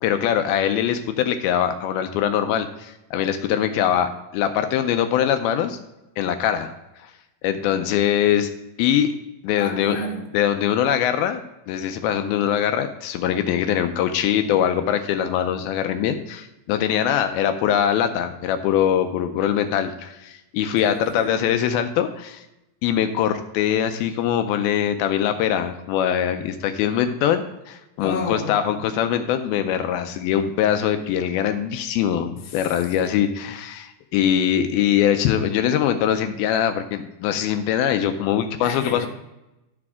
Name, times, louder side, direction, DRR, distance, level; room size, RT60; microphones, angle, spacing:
voice 1, 0.0-5.8 6.2-6.7 7.0-7.1 7.4-8.5 8.8-9.1 9.4-10.0 10.3-11.4 11.7-22.4 22.8-39.1, left 9 dB, 85° left, 8 dB, 2.4 m, -22 dB
voice 2, 9.6-10.3 20.8-21.5 28.0-28.6 32.5-32.7 38.6-39.1, left 3 dB, 60° left, 0 dB, 1.8 m, -31 dB
12.0 x 4.9 x 3.5 m, 0.93 s
omnidirectional pair, 4.3 m